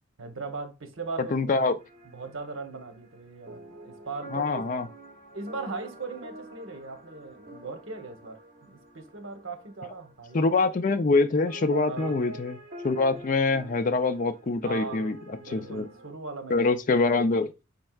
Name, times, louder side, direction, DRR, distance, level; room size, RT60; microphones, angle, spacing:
voice 1, 0.2-1.6 2.1-4.6 5.3-10.4 11.9-12.3 14.6-16.6, right 4 dB, 75° right, 0.9 m, -39 dB
voice 2, 1.3-1.7 4.3-4.9 10.3-12.6 12.8-15.9 16.5-17.5, left 3 dB, 40° left, 0.4 m, -25 dB
sound 1, 1.8-11.2 11.5-16.1, equal, 45° right, 1.1 m, -45 dB
5.2 x 4.4 x 2.3 m
head